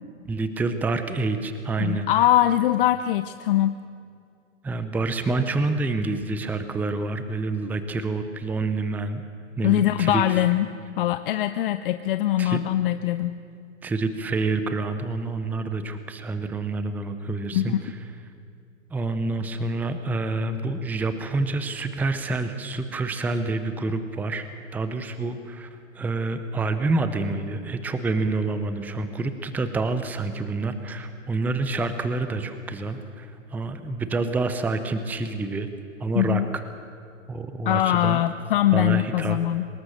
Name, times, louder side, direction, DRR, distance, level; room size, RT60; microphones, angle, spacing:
voice 1, 0.3-2.1 4.6-9.2 9.6-10.4 12.4-12.6 13.8-18.0 18.9-35.7 36.0-36.6 37.3-38.2 38.7-39.4, right 3 dB, 5° right, 10 dB, 0.7 m, -28 dB
voice 2, 1.8-3.7 9.6-10.7 11.0-13.4 17.5-17.7 36.2-36.4 37.6-39.7, left 13 dB, 40° left, 11 dB, 0.7 m, -22 dB
24.0 x 20.0 x 6.6 m, 2.4 s
hypercardioid pair, 125°, 39 cm